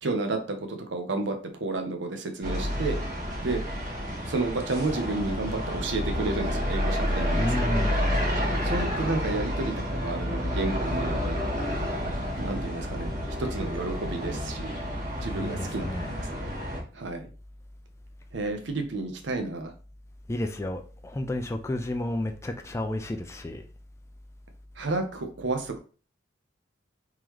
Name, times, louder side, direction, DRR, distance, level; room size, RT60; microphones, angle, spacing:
voice 1, 0.0-3.0 3.4-3.6 4.3-7.7 8.6-11.4 12.4-13.1 13.4-14.7 15.2-16.5 16.9-17.3 18.3-19.7 24.8-25.8, right 2 dB, 75° right, 0.7 m, -31 dB
sound 1, 2.4-16.8, equal, 40° right, 1.5 m, -29 dB
voice 2, 7.3-7.9 15.3-16.1 20.3-23.6, left 1 dB, 15° left, 0.3 m, -31 dB
3.8 x 3.0 x 3.0 m
head